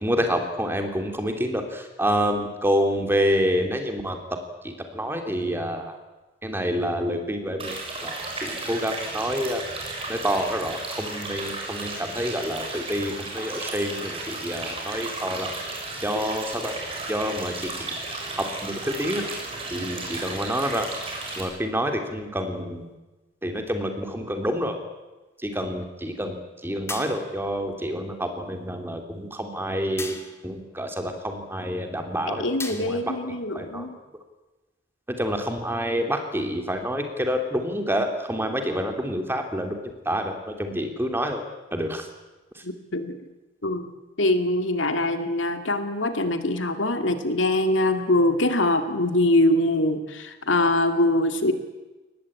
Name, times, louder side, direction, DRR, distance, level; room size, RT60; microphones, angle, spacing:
voice 1, 0.0-4.2 4.6-6.0 6.4-9.6 10.1-15.5 16.0-16.7 17.1-18.0 18.4-19.3 19.7-20.9 21.4-22.9 23.4-24.7 25.4-30.2 30.4-33.1 33.5-33.9 35.1-39.8 40.0-41.4 41.7-42.1 42.5-42.6, equal, 10° right, 5 dB, 2.9 m, -28 dB
sound 1, 7.6-21.4, right 2 dB, 30° right, 6.5 m, -34 dB
sound 2, 26.9-27.5 30.0-30.5 32.6-33.2, left 3 dB, 15° left, 2.2 m, -37 dB
voice 2, 32.3-34.0 42.6-43.2 43.6-43.9 44.2-51.5, left 1 dB, 80° left, 7 dB, 2.3 m, -23 dB
23.0 x 19.0 x 8.7 m, 1.1 s
head